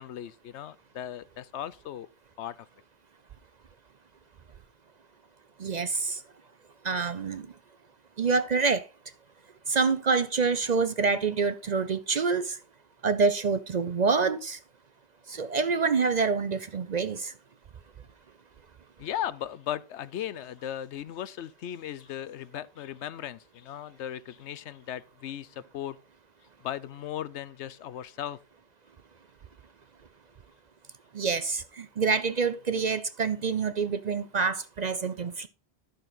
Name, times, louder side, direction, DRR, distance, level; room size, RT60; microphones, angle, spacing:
voice 1, 0.0-2.1 2.4-2.6 19.0-26.0 26.6-28.4, left 11 dB, 80° left, 0.9 m, -37 dB
voice 2, 5.6-6.2 6.8-7.5 8.2-8.9 9.7-12.6 13.0-14.6 15.3-17.3 31.1-35.5, right 4 dB, 50° right, 0.6 m, -27 dB
11.5 x 6.5 x 3.9 m
omnidirectional pair, 1.2 m